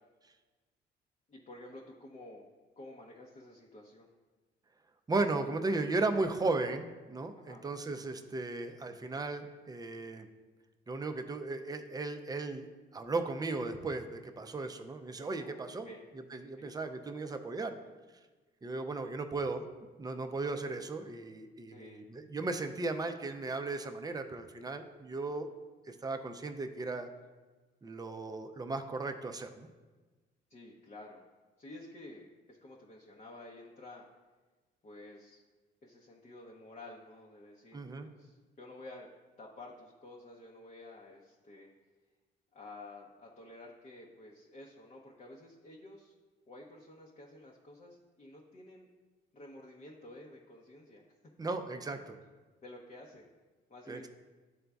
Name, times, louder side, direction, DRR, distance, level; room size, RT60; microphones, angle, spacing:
voice 1, 1.3-2.5 2.8-4.1 7.4-7.6 15.2-16.0 16.6-16.7 21.7-22.1 30.5-31.2 31.6-34.1 34.8-35.4 35.8-39.1 39.4-41.7 42.5-46.2 46.5-48.9 49.3-51.0 52.6-53.3 53.7-54.1, left 2 dB, 35° left, -1 dB, 0.8 m, -51 dB
voice 2, 5.1-10.3 10.9-15.9 16.3-17.7 18.6-19.6 20.0-25.5 25.9-27.1 27.8-29.7 37.7-38.1 51.4-52.2 53.9-54.1, right 3 dB, 20° right, 7 dB, 0.5 m, -36 dB
11.0 x 3.8 x 2.3 m, 1.3 s
cardioid pair, 90°, 20 cm